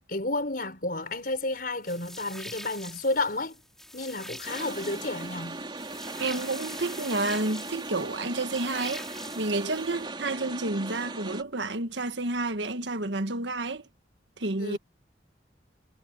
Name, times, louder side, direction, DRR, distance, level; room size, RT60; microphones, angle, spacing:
voice 1, 0.1-3.6 3.9-5.6 14.6-14.8, left 2 dB, 50° left, 5.0 m, -31 dB
sound 1, 1.8-10.0, left 1 dB, ahead, 6.2 m, -44 dB
sound 2, 4.4-11.4, right 2 dB, 25° right, 3.1 m, -39 dB
voice 2, 6.2-9.0 9.4-13.8 14.4-14.8, right 2 dB, 85° right, 1.5 m, -30 dB
head